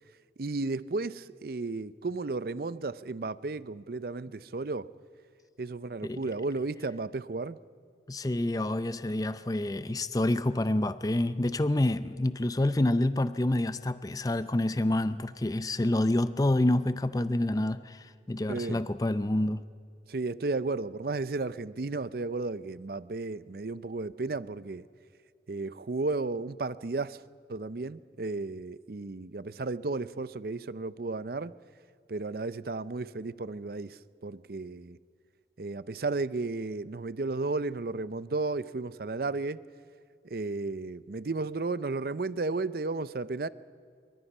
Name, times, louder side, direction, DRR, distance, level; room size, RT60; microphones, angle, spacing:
voice 1, 0.4-4.9 5.6-7.6 18.5-18.8 20.1-24.9 25.5-27.2 27.5-31.5 32.1-35.0 35.6-39.6 40.2-43.5, right 3 dB, 55° right, 0.6 m, -33 dB
voice 2, 8.1-19.6, left 1 dB, 20° left, 0.5 m, -28 dB
25.0 x 23.5 x 5.5 m
head